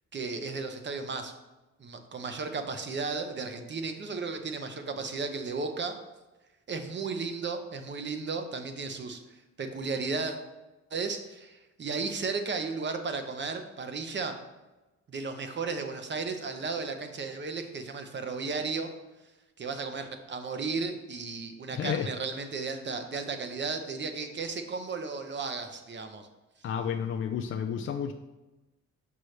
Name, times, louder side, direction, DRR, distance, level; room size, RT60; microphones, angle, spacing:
voice 1, 0.1-1.3 1.8-6.0 6.7-9.2 9.6-10.4 10.9-14.4 15.1-18.9 19.6-26.3, right 4 dB, 35° right, 6 dB, 0.8 m, -34 dB
voice 2, 21.7-22.1 26.6-28.1, left 8 dB, 45° left, 5 dB, 0.4 m, -31 dB
6.5 x 5.3 x 3.2 m, 1.1 s
cardioid pair, 115°, 30 cm